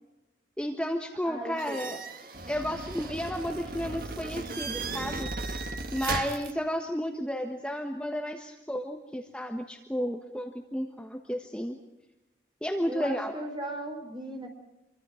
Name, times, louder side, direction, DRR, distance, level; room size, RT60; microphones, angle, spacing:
voice 1, 0.6-2.0 2.5-5.3 5.9-11.8 12.6-13.3, equal, 5° left, 3 dB, 1.4 m, -32 dB
voice 2, 1.2-1.9 12.9-14.5, right 1 dB, 25° right, 4 dB, 4.7 m, -37 dB
sound 1, 1.6-6.5, right 3 dB, 55° right, 1.7 m, -36 dB
27.0 x 24.0 x 5.1 m, 1.0 s
head